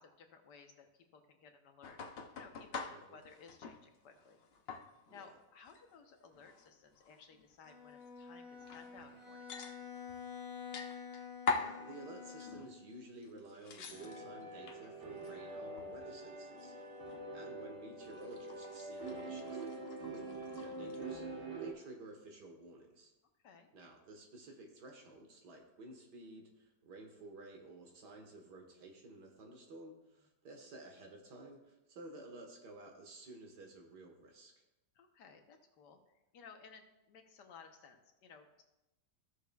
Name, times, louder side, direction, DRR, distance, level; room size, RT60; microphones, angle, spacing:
voice 1, 0.0-4.4 5.1-10.0 23.4-23.7 34.9-36.0 36.3-38.6, left 5 dB, 80° left, 5 dB, 1.6 m, -58 dB
sound 1, 1.8-3.9 4.1-5.3 5.7-5.8 6.3-7.5 8.0-8.1 8.6-9.2 9.5-10.2 10.7-11.8 12.4-12.8 13.2-14.9 15.2-16.1 16.4-17.2 18.0-21.1, left 4 dB, 55° left, 0.7 m, -44 dB
voice 2, 2.9-3.2 5.1-5.3 11.6-16.8 17.3-23.1 23.7-34.5, right 2 dB, 75° right, 2 dB, 2.0 m, -53 dB
Bowed string instrument, 7.6-12.9, left 6 dB, 15° right, 3.4 m, -49 dB
sound 2, 13.9-21.7, right 2 dB, 35° right, 1.3 m, -45 dB
15.5 x 6.4 x 2.3 m, 0.96 s
omnidirectional pair, 1.8 m